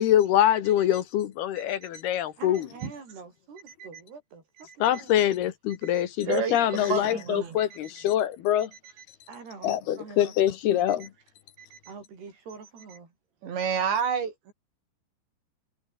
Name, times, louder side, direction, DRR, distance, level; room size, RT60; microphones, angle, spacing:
voice 1, 0.0-2.6 4.8-8.7 9.6-11.1, left 11 dB, 70° left, 3.3 m, -24 dB
voice 2, 2.4-5.5 6.8-7.3 9.3-10.9 11.9-13.1, right 5 dB, 70° right, 8.7 m, -46 dB
voice 3, 5.8-7.9 11.6-11.8 13.4-14.5, right 7 dB, 90° right, 6.7 m, -30 dB
omnidirectional pair, 4.9 m